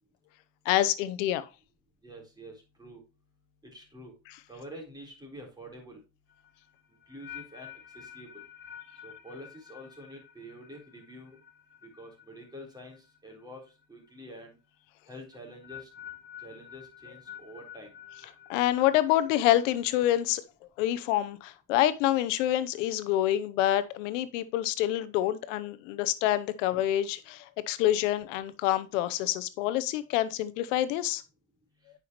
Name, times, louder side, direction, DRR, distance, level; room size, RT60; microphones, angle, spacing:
voice 1, 0.6-1.5 18.5-20.4 20.8-31.2, left 13 dB, 90° left, 0.8 m, -27 dB
voice 2, 2.0-3.0 3.6-4.1 4.5-6.0 7.1-8.4 9.0-11.4 11.8-13.6 13.9-14.6 15.1-15.9 16.4-17.9, equal, 10° right, 4.0 m, -47 dB
sound 1, 6.3-13.4 13.7-14.1 15.3-19.9, left 10 dB, 30° left, 2.6 m, -49 dB
9.3 x 5.6 x 3.1 m
supercardioid pair, 95°, 37 cm